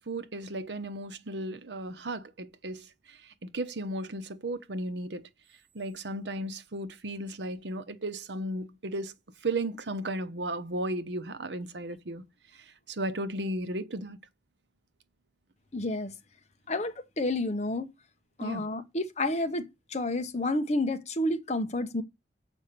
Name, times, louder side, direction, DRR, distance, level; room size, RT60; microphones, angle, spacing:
voice 1, 0.1-2.8 3.5-5.3 5.7-9.1 9.4-12.2 12.9-14.2 18.4-18.7, right 1 dB, 75° right, 0.9 m, -35 dB
voice 2, 15.7-16.1 16.7-17.9 18.4-22.0, left 2 dB, 40° left, 1.0 m, -30 dB
7.2 x 5.1 x 6.7 m
head